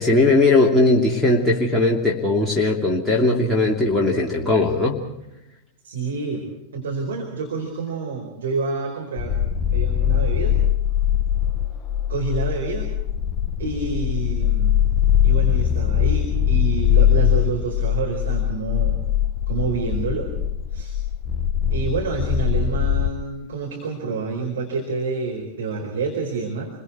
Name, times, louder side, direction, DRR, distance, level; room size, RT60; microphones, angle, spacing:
voice 1, 0.0-5.0, left 2 dB, ahead, -4 dB, 2.9 m, -19 dB
voice 2, 5.8-6.4 6.7-9.4 9.7-10.6 12.1-12.9 13.6-14.8 15.2-19.0 19.5-20.3 20.7-21.0 21.7-26.7, right 4 dB, 65° right, 1 dB, 4.5 m, -28 dB
sound 1, 9.2-23.1, left 10 dB, 30° left, 1.2 m, -21 dB
29.0 x 23.0 x 4.7 m, 0.91 s
figure-of-eight pair, 90°, 0 cm